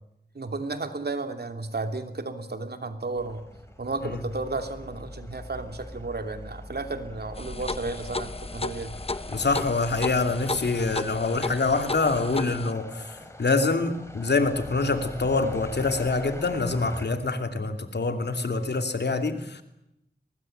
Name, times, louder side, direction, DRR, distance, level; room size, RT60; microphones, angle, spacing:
voice 1, 0.3-3.4 3.8-8.9, right 3 dB, 70° right, 7 dB, 3.0 m, -33 dB
sound 1, 3.2-17.1, left 1 dB, 15° left, 5.5 m, -42 dB
sound 2, 7.4-12.7, left 3 dB, 35° left, 1.0 m, -34 dB
voice 2, 9.3-19.6, left 3 dB, 85° left, 7 dB, 2.7 m, -26 dB
23.5 x 20.0 x 8.9 m, 0.84 s
wide cardioid pair, 55°, 17 cm